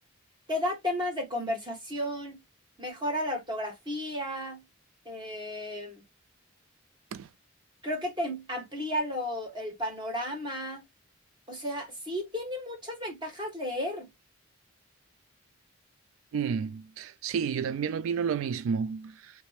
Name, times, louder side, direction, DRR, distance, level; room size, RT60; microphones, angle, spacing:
voice 1, 0.5-2.4 2.8-4.6 5.0-6.0 7.8-10.8 11.5-14.1, left 1 dB, 20° right, 1.6 m, -33 dB
voice 2, 16.3-19.3, right 6 dB, 80° right, 0.3 m, -31 dB
3.3 x 3.2 x 3.1 m
head